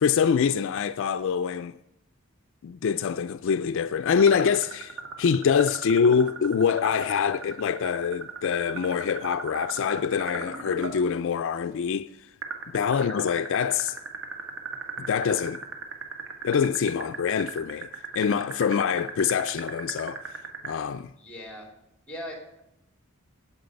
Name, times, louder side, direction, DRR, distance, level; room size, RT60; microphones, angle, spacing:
voice 1, 0.0-1.8 2.6-12.1 12.7-14.0 15.0-15.6 16.4-17.9 18.1-20.2 20.6-21.1, left 6 dB, 60° left, 0.4 m, -25 dB
sound 1, 4.2-10.9 12.4-20.7, right 5 dB, 65° right, 1.7 m, -36 dB
voice 2, 21.2-21.7 22.1-22.6, equal, 5° left, 3.3 m, -40 dB
16.5 x 7.4 x 5.2 m
head